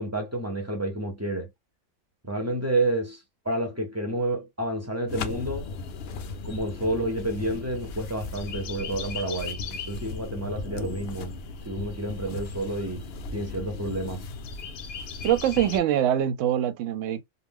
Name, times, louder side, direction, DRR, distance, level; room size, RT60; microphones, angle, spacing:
voice 1, 0.0-1.5 2.3-5.7 6.4-11.4 11.6-13.1 13.3-14.3, right 1 dB, 25° right, 0.4 m, -30 dB
sound 1, 5.1-15.8, left 4 dB, 70° left, 0.6 m, -36 dB
voice 2, 15.2-17.2, right 11 dB, 70° right, 0.8 m, -24 dB
2.5 x 2.0 x 3.5 m
omnidirectional pair, 1.5 m